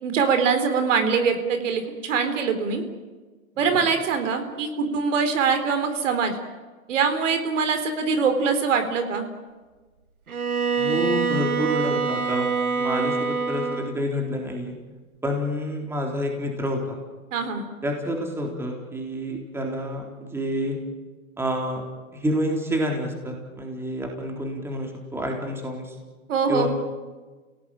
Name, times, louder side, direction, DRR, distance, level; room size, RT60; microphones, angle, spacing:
voice 1, 0.0-2.8 3.6-6.3 6.9-9.3 17.3-17.7 26.3-26.7, right 5 dB, 60° right, 7 dB, 4.1 m, -23 dB
voice 2, 3.6-3.9 10.8-14.7 15.2-17.0 17.8-20.8 21.4-21.8 22.1-26.0 26.5-26.7, equal, 5° right, 1 dB, 3.7 m, -28 dB
Bowed string instrument, 10.3-14.0, right 5 dB, 85° right, 2.2 m, -25 dB
29.5 x 18.0 x 9.1 m, 1.3 s
hypercardioid pair, 130°, 42 cm